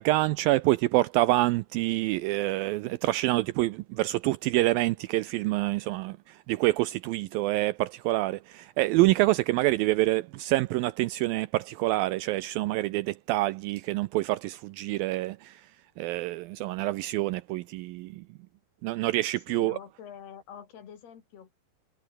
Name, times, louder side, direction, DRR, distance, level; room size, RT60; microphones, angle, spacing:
voice 1, 0.0-15.7 16.0-18.2 18.8-19.8, right 18 dB, 85° right, 2.1 m, -27 dB
voice 2, 19.5-21.5, left 8 dB, 75° left, 5.0 m, -46 dB
omnidirectional pair, 4.6 m